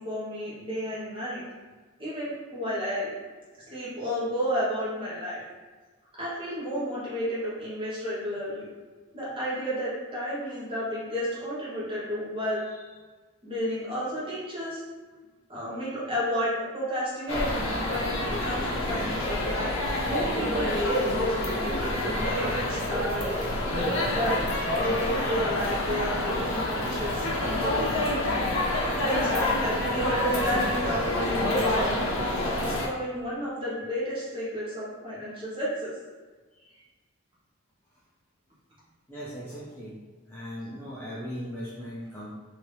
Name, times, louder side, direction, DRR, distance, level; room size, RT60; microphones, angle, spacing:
voice 1, 0.0-1.4 2.0-3.1 3.7-5.4 6.2-8.7 9.1-12.9 13.4-14.8 15.5-19.8 20.0-23.5 24.0-24.4 24.7-28.2 29.0-31.9 32.6-35.9, equal, 25° right, -9 dB, 1.1 m, -32 dB
sound 1, 17.3-32.9, left 1 dB, 60° left, 0.6 m, -27 dB
voice 2, 39.1-40.0 40.3-42.3, equal, 10° left, -9 dB, 0.4 m, -38 dB
2.9 x 2.6 x 3.2 m, 1.3 s
head